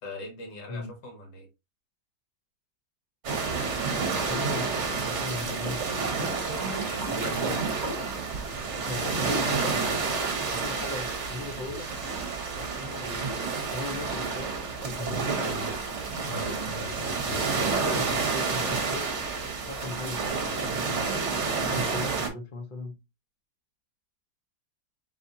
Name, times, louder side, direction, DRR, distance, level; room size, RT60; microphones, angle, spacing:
voice 1, 0.0-1.5 6.8-7.6 16.3-16.7, left 2 dB, 75° left, 2.1 m, -42 dB
sound 1, 3.2-22.3, right 4 dB, 45° right, 1.2 m, -29 dB
voice 2, 4.3-6.2 7.1-8.2 8.8-11.9 12.5-15.7 16.3-17.6 17.9-19.1 19.6-22.9, left 2 dB, 40° left, 0.8 m, -38 dB
4.2 x 3.7 x 2.7 m
omnidirectional pair, 1.9 m